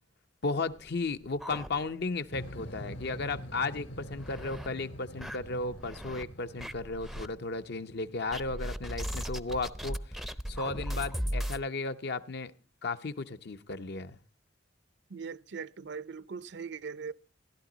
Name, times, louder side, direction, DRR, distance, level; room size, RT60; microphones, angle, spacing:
voice 1, 0.4-12.5 12.8-14.2, left 3 dB, 60° left, 0.8 m, -35 dB
sound 1, 0.7-2.3 2.6-2.7 3.1-3.2 3.8-4.7 5.2-6.2 6.6-7.3 8.3-11.6, equal, ahead, 0.5 m, -37 dB
sound 2, 2.3-9.4, equal, 85° left, 2.4 m, -46 dB
voice 2, 15.1-17.1, right 5 dB, 65° right, 0.6 m, -40 dB
16.0 x 11.5 x 3.9 m
head